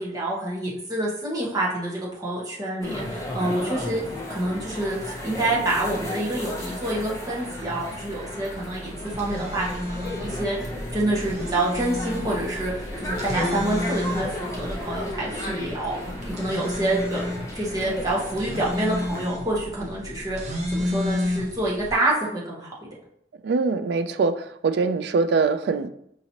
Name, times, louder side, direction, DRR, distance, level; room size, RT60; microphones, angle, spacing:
voice 1, 0.0-4.0 4.3-15.9 16.2-22.7, right 1 dB, 20° right, -5 dB, 1.1 m, -27 dB
sound 1, 2.8-19.3, left 1 dB, 15° left, 0.6 m, -34 dB
sound 2, 9.0-22.0, left 1 dB, 40° right, 0.8 m, -32 dB
voice 2, 23.4-25.9, right 4 dB, 65° right, 10 dB, 0.3 m, -23 dB
4.9 x 2.8 x 2.8 m, 0.73 s
head